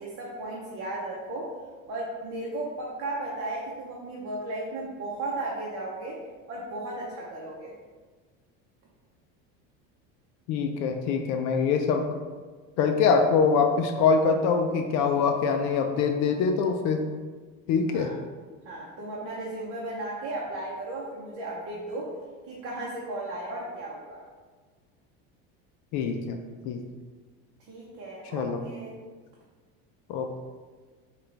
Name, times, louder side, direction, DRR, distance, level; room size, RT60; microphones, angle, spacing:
voice 1, 0.0-1.6 1.9-6.2 6.5-7.7 17.9-18.2 18.6-22.1 22.5-24.2 27.7-28.9, right 2 dB, 45° right, -5 dB, 0.8 m, -35 dB
voice 2, 10.5-12.1 12.8-17.0 17.7-18.1 25.9-26.8 28.3-28.6 30.1-30.4, left 5 dB, 60° left, 5 dB, 0.4 m, -24 dB
5.6 x 2.4 x 3.3 m, 1.4 s
cardioid pair, 145°, 32 cm